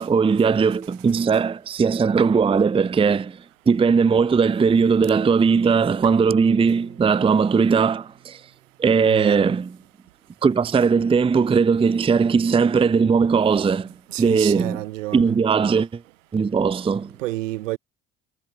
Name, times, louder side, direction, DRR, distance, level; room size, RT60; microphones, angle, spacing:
voice 1, 0.0-3.4 3.7-8.4 8.8-9.7 10.4-13.9 14.2-14.8 15.1-16.0 16.3-17.1, right 5 dB, 15° right, 0.5 m, -19 dB
Bowed string instrument, 6.0-9.3, right 20 dB, 70° right, 7.2 m, -48 dB
voice 2, 9.0-9.5 14.1-15.4 17.2-17.8, right 18 dB, 85° right, 3.7 m, -30 dB
hypercardioid pair, 65°, 37 cm